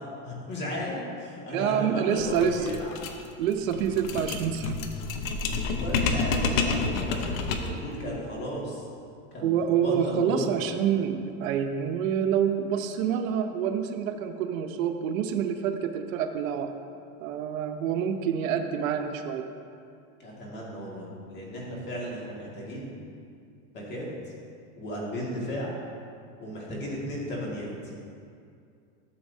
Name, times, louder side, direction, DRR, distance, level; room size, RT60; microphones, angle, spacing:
voice 1, 0.0-2.9 5.5-8.8 9.3-10.5 20.2-22.9 23.7-24.1 24.8-25.7 26.4-27.7, equal, 25° left, -4 dB, 2.0 m, -35 dB
voice 2, 1.5-2.7 3.4-4.8 9.4-16.7 17.2-19.5, right 8 dB, 80° right, 6 dB, 0.8 m, -27 dB
sound 1, 2.1-7.8, left 4 dB, 75° left, 1.0 m, -29 dB
13.0 x 7.0 x 2.7 m, 2.4 s
supercardioid pair, 150°, 40 cm